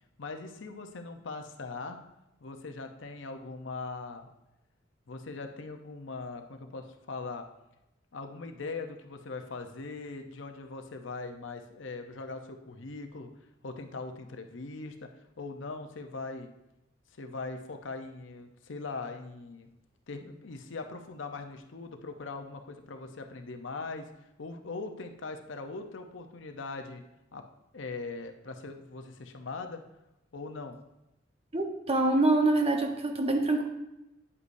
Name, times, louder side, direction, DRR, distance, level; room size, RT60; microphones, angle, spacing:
voice 1, 0.2-2.0 2.4-4.3 5.1-7.4 8.1-13.3 13.6-15.1 15.4-16.5 17.2-19.7 20.1-24.1 24.4-27.0 27.3-27.4 27.7-29.8 30.3-30.8, left 3 dB, 70° left, 6 dB, 0.7 m, -40 dB
voice 2, 31.5-33.6, right 2 dB, 30° right, 3 dB, 0.9 m, -25 dB
9.6 x 8.2 x 2.7 m, 0.91 s
head